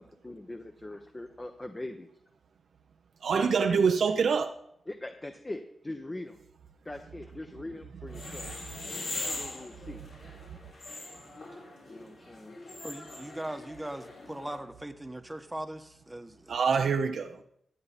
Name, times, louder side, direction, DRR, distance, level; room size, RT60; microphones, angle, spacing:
voice 1, 0.0-2.1 3.3-3.8 4.9-6.4 6.8-8.5 9.2-10.0 11.8-12.6, left 1 dB, 25° left, 1.0 m, -41 dB
voice 2, 3.2-4.5 16.5-17.4, right 5 dB, 75° right, 0.6 m, -25 dB
sound 1, 8.1-14.6, left 2 dB, 75° left, 4.7 m, -41 dB
voice 3, 12.8-16.5, right 1 dB, 15° right, 1.1 m, -40 dB
15.0 x 8.6 x 4.2 m
cardioid pair, 60°, 0 cm